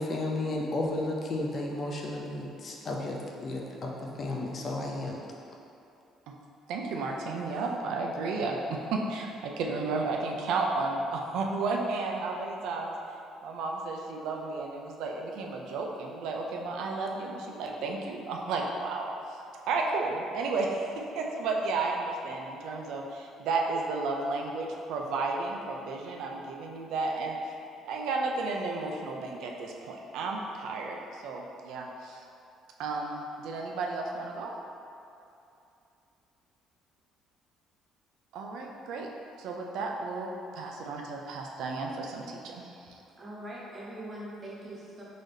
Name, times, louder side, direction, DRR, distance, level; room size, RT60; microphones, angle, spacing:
voice 1, 0.0-5.2, left 2 dB, 30° left, -1 dB, 0.3 m, -33 dB
voice 2, 6.7-12.9 13.4-19.1 19.7-27.4 27.9-31.0 31.2-32.2 32.8-34.5 38.3-39.1 39.4-42.9, right 3 dB, 70° right, 0 dB, 0.3 m, -33 dB
voice 3, 43.2-45.0, right 1 dB, 20° right, -6 dB, 0.7 m, -42 dB
3.8 x 2.6 x 3.2 m, 2.7 s
cardioid pair, 170°, 0 cm